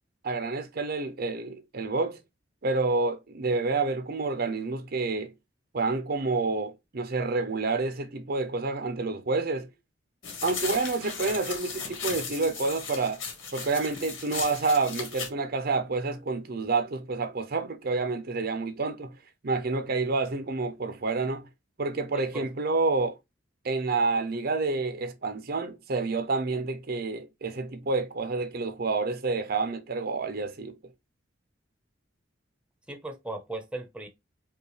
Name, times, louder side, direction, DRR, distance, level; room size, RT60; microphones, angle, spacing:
voice 1, 0.2-2.2 2.6-5.3 5.7-9.7 10.4-13.2 13.5-19.2 19.4-21.5 21.8-23.2 23.6-30.8, right 3 dB, 55° right, 0.6 m, -28 dB
sound 1, 10.2-15.3, left 5 dB, 85° left, 1.7 m, -36 dB
voice 2, 22.1-22.5 32.9-34.1, right 2 dB, 5° right, 0.7 m, -37 dB
5.2 x 2.4 x 3.1 m
head